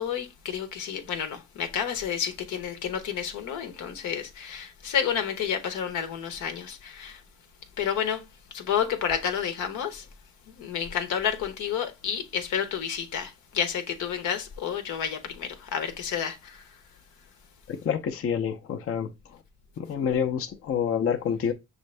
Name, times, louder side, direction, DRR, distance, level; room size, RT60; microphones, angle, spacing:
voice 1, 0.0-7.2 7.8-10.1 10.5-16.8, left 8 dB, 80° left, 0.9 m, -30 dB
voice 2, 17.7-19.1 19.8-21.5, left 7 dB, 50° left, 0.6 m, -27 dB
6.4 x 2.6 x 3.2 m
cardioid pair, 90°, 30 cm